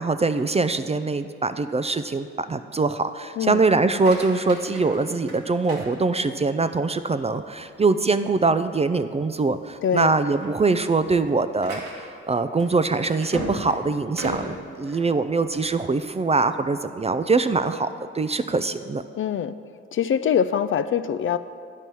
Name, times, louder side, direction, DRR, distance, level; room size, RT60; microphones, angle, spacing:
voice 1, 0.0-17.9 18.1-19.0, right 3 dB, 20° right, 11 dB, 0.4 m, -23 dB
sound 1, 3.8-6.6 7.1-7.5 8.0-8.1 8.5-8.6 9.3-9.6 9.9-15.8, right 2 dB, 80° right, 1.6 m, -37 dB
voice 2, 9.8-10.1 19.1-19.5 19.9-21.4, left 8 dB, 40° left, 12 dB, 0.4 m, -23 dB
9.1 x 5.3 x 6.2 m, 2.3 s
hypercardioid pair, 40°, 32 cm